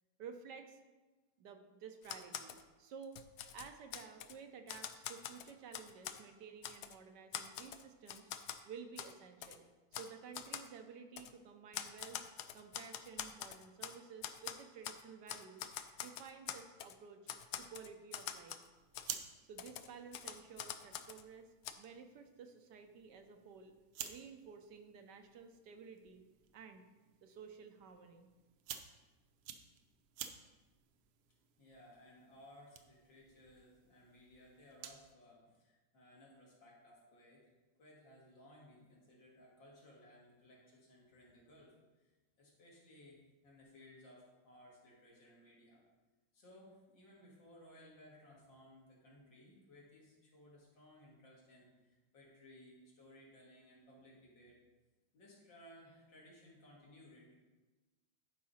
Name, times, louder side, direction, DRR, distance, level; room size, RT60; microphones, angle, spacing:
voice 1, 0.2-0.8 1.4-3.2 3.5-8.3 8.6-12.2 12.5-15.7 16.0-17.2 17.6-18.6 19.4-21.5 21.8-23.7 24.0-26.2 26.5-26.9 27.2-28.3, right 6 dB, 70° right, 6 dB, 1.2 m, -53 dB
Typewriter, 2.0-2.6 3.0-4.3 4.7-6.2 6.6-7.0 7.3-8.6 9.0-9.1 9.4-9.6 9.9-10.1 10.3-10.7 11.2-11.3 11.7-14.0 14.2-15.0 15.3-16.9 17.3-18.7 18.9-19.1 19.6-21.2 21.6-21.7, left 10 dB, 80° left, 0.8 m, -45 dB
sound 1, 18.7-35.1, right 9 dB, 90° right, 1.5 m, -53 dB
voice 2, 31.6-37.5 37.8-41.7 42.0-42.1 42.4-45.8 46.3-54.6 55.1-57.3, left 1 dB, 65° left, -5 dB, 2.8 m, -60 dB
11.5 x 4.8 x 4.2 m, 1.2 s
omnidirectional pair, 2.2 m